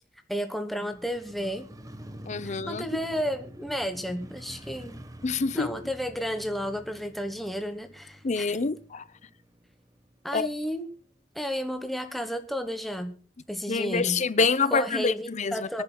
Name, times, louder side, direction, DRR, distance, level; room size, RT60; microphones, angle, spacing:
voice 1, 0.3-1.7 2.4-5.0 5.5-8.5 10.2-10.9 11.3-13.1 13.5-14.2 14.7-15.8, equal, ahead, 1.1 m, -32 dB
Motorcycle, 0.9-11.0 11.4-11.5, right 1 dB, 20° right, 1.2 m, -47 dB
voice 2, 2.3-2.8 5.2-5.7 8.2-9.0 10.3-10.5 13.7-15.8, left 4 dB, 40° left, 0.6 m, -26 dB
24.5 x 10.5 x 2.3 m
head